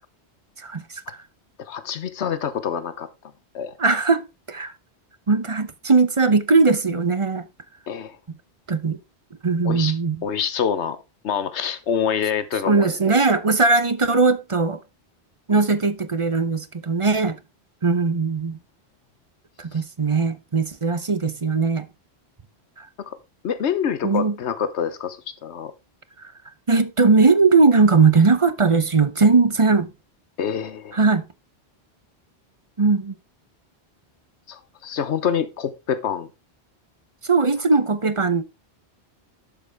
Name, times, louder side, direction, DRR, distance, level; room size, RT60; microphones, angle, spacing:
voice 1, 0.6-1.2 3.8-4.7 5.3-7.5 8.7-9.0 9.4-10.2 12.7-14.8 15.5-17.4 17.8-18.6 19.6-21.9 22.8-22.9 24.0-24.4 26.2-26.3 26.7-29.9 30.9-31.2 32.8-33.1 37.2-38.4, right 4 dB, 30° right, 0.8 m, -19 dB
voice 2, 1.6-3.1 3.5-3.7 7.9-8.2 9.6-10.0 10.2-11.0 11.2-13.0 23.1-23.2 23.4-25.7 30.4-31.0 34.5-36.3, left 8 dB, 85° left, 1.2 m, -26 dB
11.5 x 7.0 x 3.5 m
omnidirectional pair, 1.1 m